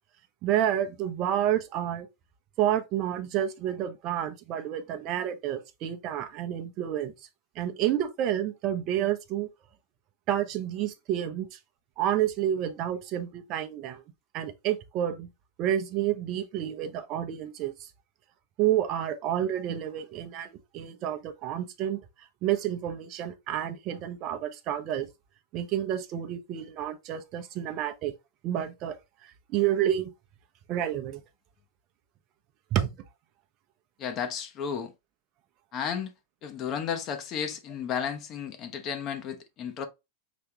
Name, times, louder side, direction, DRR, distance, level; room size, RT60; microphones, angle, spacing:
voice 1, 0.4-2.1 2.6-7.1 7.6-9.5 10.3-11.6 12.0-14.0 14.3-15.3 15.6-17.9 18.6-22.0 22.4-25.1 25.5-28.1 28.4-29.0 29.2-30.1 30.7-31.2 32.7-32.9, right 11 dB, 40° right, 0.7 m, -29 dB
voice 2, 34.0-34.9 35.7-36.1 36.4-39.9, left 7 dB, 35° left, 0.9 m, -33 dB
5.1 x 3.3 x 2.9 m
figure-of-eight pair, 90°, 0 cm